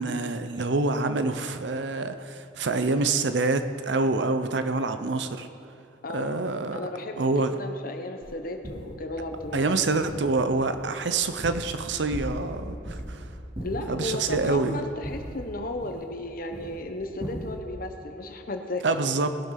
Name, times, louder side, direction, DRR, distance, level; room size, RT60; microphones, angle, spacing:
voice 1, 0.0-5.5 6.1-6.8 7.2-7.5 9.5-13.2 13.9-14.8 18.8-19.3, right 3 dB, 65° right, 9 dB, 0.7 m, -26 dB
voice 2, 6.0-6.4 6.7-9.7 13.6-18.8, left 2 dB, 50° left, 5 dB, 1.1 m, -34 dB
sound 1, 8.2-8.3 8.6-8.9 9.3-9.6 10.0-10.4 10.8-11.8 12.1-12.6 12.8-13.2 13.5-14.6 15.0-16.2 16.5-16.8 17.2-17.5, right 1 dB, 35° right, 3.0 m, -37 dB
19.5 x 7.3 x 5.8 m, 2.6 s
head